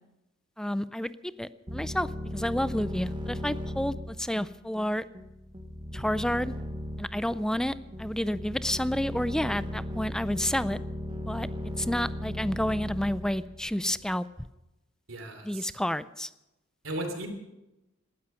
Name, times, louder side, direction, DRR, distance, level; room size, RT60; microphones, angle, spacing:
voice 1, 0.6-5.0 5.9-6.5 7.0-10.8 11.3-11.5 11.8-14.5 15.4-16.3, left 1 dB, 5° left, 15 dB, 0.4 m, -30 dB
sound 1, 1.7-14.2, equal, 25° right, 1.4 m, -37 dB
voice 2, 15.1-15.7 16.8-17.3, right 1 dB, 90° right, 5 dB, 3.1 m, -36 dB
18.0 x 13.0 x 5.7 m, 0.96 s
head